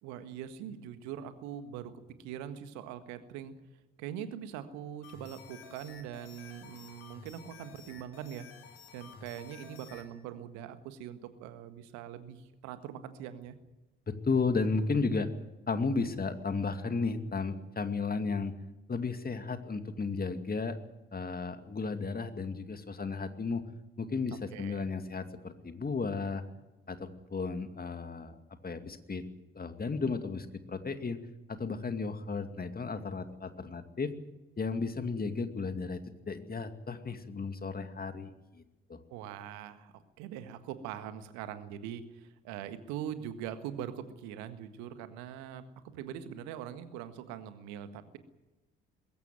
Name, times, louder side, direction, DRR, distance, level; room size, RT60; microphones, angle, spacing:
voice 1, 0.0-3.5 4.0-8.5 8.9-13.5 24.3-24.8 39.1-45.6 45.9-48.2, right 10 dB, 70° right, 11 dB, 1.7 m, -42 dB
sound 1, 5.0-10.1, left 5 dB, 75° left, 2.7 m, -52 dB
voice 2, 14.1-15.3 15.7-18.5 18.9-20.8 21.1-23.6 24.0-26.4 26.9-28.3 28.6-29.2 29.6-31.2 31.5-34.1 34.6-36.0 36.3-38.6 38.9-39.0, left 4 dB, 30° left, 9 dB, 2.4 m, -34 dB
21.0 x 16.5 x 9.4 m, 1.1 s
figure-of-eight pair, 40°, 29 cm